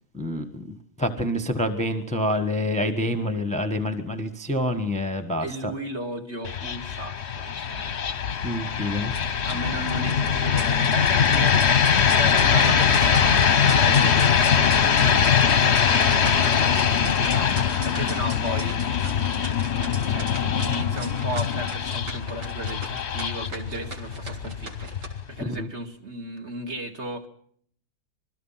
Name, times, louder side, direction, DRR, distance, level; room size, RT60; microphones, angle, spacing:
voice 1, 0.1-5.7 8.4-9.1 25.4-25.7, left 1 dB, 5° left, 6 dB, 1.4 m, -27 dB
voice 2, 5.4-8.0 9.4-11.6 12.1-18.8 19.2-19.5 20.0-24.9 25.3-27.3, right 1 dB, 40° right, 3 dB, 2.8 m, -35 dB
sound 1, 6.4-25.4, left 7 dB, 45° left, 1.2 m, -22 dB
sound 2, 9.0-25.1, right 2 dB, 85° right, 4.1 m, -41 dB
27.0 x 21.0 x 5.9 m, 0.62 s
omnidirectional pair, 1.8 m